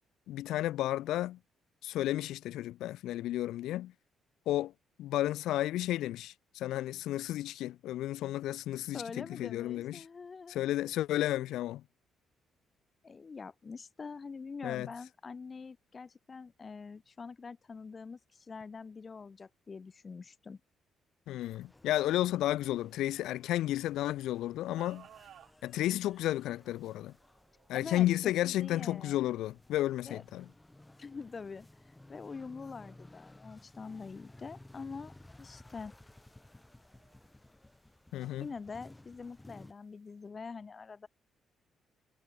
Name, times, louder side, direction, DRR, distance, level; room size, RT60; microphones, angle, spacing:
voice 1, 0.3-1.4 1.8-3.9 4.5-4.7 5.0-10.1 10.5-11.8 14.6-14.9 21.3-25.1 25.6-27.1 27.7-30.5 38.1-38.5, left 14 dB, 85° left, 0.4 m, -32 dB
voice 2, 8.9-10.6 13.0-20.6 27.7-29.2 30.0-30.2 31.0-35.1 35.4-35.9 38.4-41.1, left 5 dB, 35° left, 1.4 m, -45 dB
sound 1, 21.4-39.7, left 1 dB, 10° left, 2.9 m, -57 dB
sound 2, 24.8-40.3, right 10 dB, 65° right, 3.2 m, -65 dB
cardioid pair, 90°, 0 cm